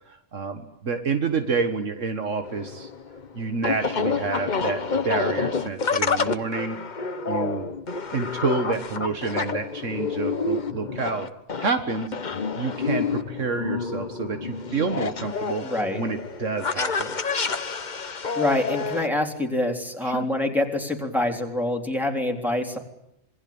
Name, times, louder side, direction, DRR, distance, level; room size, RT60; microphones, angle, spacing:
voice 1, 0.1-2.9 3.3-6.8 7.3-7.7 8.1-11.3 11.6-12.1 12.6-15.7 15.9-17.2 20.0-20.3, right 4 dB, 75° right, 7 dB, 1.9 m, -28 dB
sound 1, 2.4-19.1, left 5 dB, 40° left, 1.2 m, -28 dB
voice 2, 15.6-16.0 18.4-22.8, left 1 dB, ahead, 2 dB, 3.7 m, -26 dB
27.0 x 21.5 x 8.7 m, 0.81 s
omnidirectional pair, 1.3 m